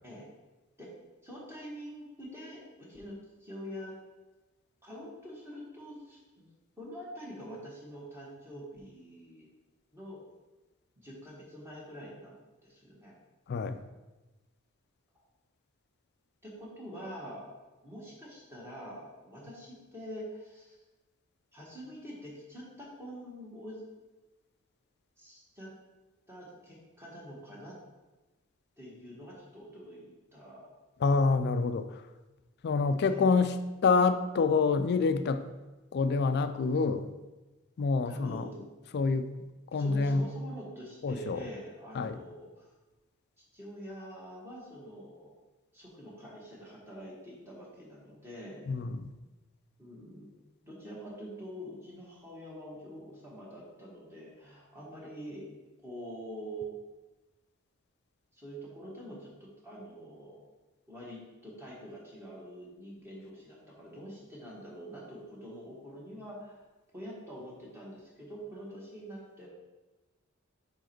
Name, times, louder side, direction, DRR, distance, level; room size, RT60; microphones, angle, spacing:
voice 1, 1.2-3.9 4.8-6.5 6.8-9.5 9.9-10.2 11.0-13.2 16.4-17.5 17.8-20.8 21.5-23.9 25.2-25.7 26.3-27.7 28.8-30.7 33.0-33.4 38.0-38.7 39.7-42.7 43.5-45.4 45.7-48.6 49.8-50.3 50.6-55.5 55.8-56.7 58.3-60.5 60.9-66.6 66.9-69.5, equal, 10° right, -6 dB, 1.4 m, -45 dB
voice 2, 13.5-13.8 31.0-31.9 32.6-33.6 33.8-35.4 35.9-37.0 37.8-38.4 38.9-39.3 39.7-40.3 41.0-41.4 42.0-42.1 48.7-49.1, left 4 dB, 50° left, 11 dB, 0.4 m, -26 dB
5.2 x 4.7 x 4.5 m, 1.1 s
head